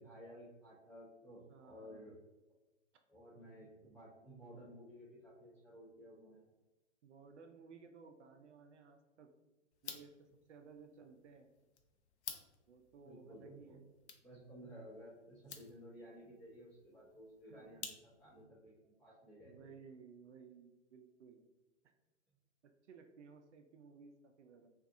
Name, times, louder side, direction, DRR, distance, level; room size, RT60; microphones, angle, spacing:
voice 1, 0.0-2.2 3.1-6.5 13.0-13.8 14.2-19.7, equal, 5° left, -9 dB, 0.3 m, -55 dB
voice 2, 1.5-2.2 7.0-9.3 9.8-11.5 12.7-13.8 17.4-17.8 19.4-21.5 22.6-24.7, right 5 dB, 70° right, 5 dB, 0.5 m, -58 dB
sound 1, 9.7-18.4, left 7 dB, 65° left, 0.5 m, -54 dB
2.5 x 2.5 x 2.5 m, 1.1 s
hypercardioid pair, 125°, 37 cm